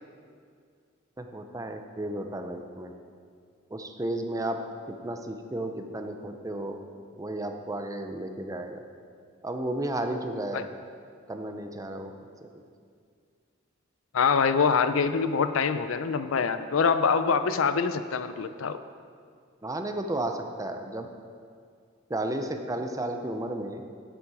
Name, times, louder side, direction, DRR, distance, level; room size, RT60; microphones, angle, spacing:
voice 1, 1.2-2.9 3.7-4.6 5.0-6.8 7.2-8.8 9.4-10.7 11.3-12.1 12.4-12.5 19.6-21.1 22.1-23.8, right 1 dB, 15° right, 5 dB, 0.6 m, -33 dB
voice 2, 14.1-18.8, left 5 dB, 75° left, 11 dB, 0.5 m, -24 dB
12.0 x 6.9 x 4.8 m, 2.2 s
head